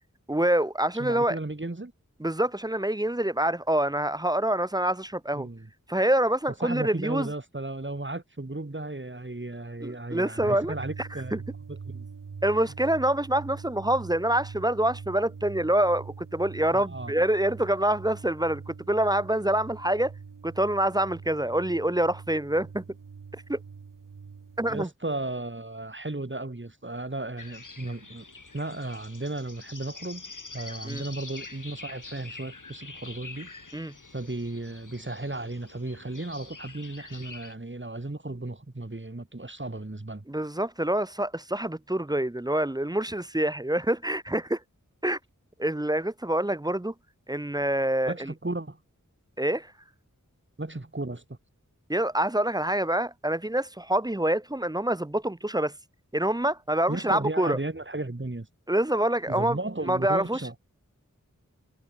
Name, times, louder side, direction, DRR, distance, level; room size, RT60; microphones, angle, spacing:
voice 1, 0.3-1.4 2.2-5.5 5.9-7.3 9.8-11.4 12.4-20.1 20.4-22.8 23.5-23.6 24.6-24.9 30.8-31.0 33.7-33.9 40.3-44.6 45.0-45.2 45.6-46.9 47.3-48.3 49.4-49.7 51.9-55.7 56.1-57.6 58.7-59.6 59.8-60.4, right 1 dB, 15° right, 0.6 m, -26 dB
voice 2, 1.0-1.9 5.3-5.7 6.6-11.4 11.7-12.1 16.7-17.1 24.7-28.2 28.5-30.2 30.5-33.5 34.1-40.2 48.1-48.8 50.6-51.2 56.9-58.5 59.3-60.6, right 2 dB, 35° right, 2.4 m, -35 dB
sound 1, 10.4-24.9, right 5 dB, 90° right, 0.9 m, -43 dB
sound 2, 27.4-37.5, left 3 dB, 75° left, 2.2 m, -45 dB
wide cardioid pair, 40°, 31 cm